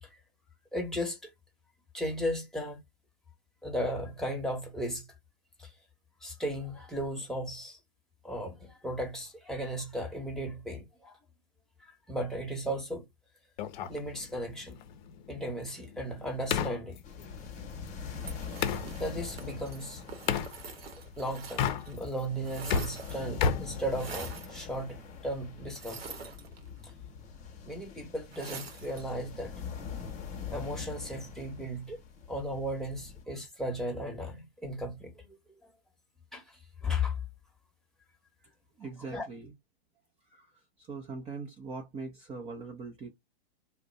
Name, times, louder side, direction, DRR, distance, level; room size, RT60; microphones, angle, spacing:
voice 1, 0.7-1.2 1.9-2.8 3.6-5.1 5.6-5.7 6.2-7.8 8.2-11.2 11.8-13.1 13.9-14.8 15.3-17.0 19.0-20.0 21.2-26.0 26.8-26.9 27.7-29.5 30.5-32.0 32.3-35.7 36.3-37.2 39.0-39.3, equal, ahead, 1.1 m, -36 dB
sound 1, 13.6-18.9 20.3-20.5 21.4-22.2 22.5-24.5, left 6 dB, 50° left, 0.6 m, -33 dB
sound 2, 17.0-33.2, left 6 dB, 25° left, 1.0 m, -44 dB
sound 3, 18.2-22.0 22.2-23.4 23.9-24.6 25.7-26.9 28.3-29.1, right 5 dB, 85° right, 1.0 m, -45 dB
voice 2, 38.8-39.5 40.3-40.5 40.8-43.2, right 4 dB, 20° right, 0.7 m, -41 dB
2.6 x 2.2 x 3.9 m
hypercardioid pair, 115°, 29 cm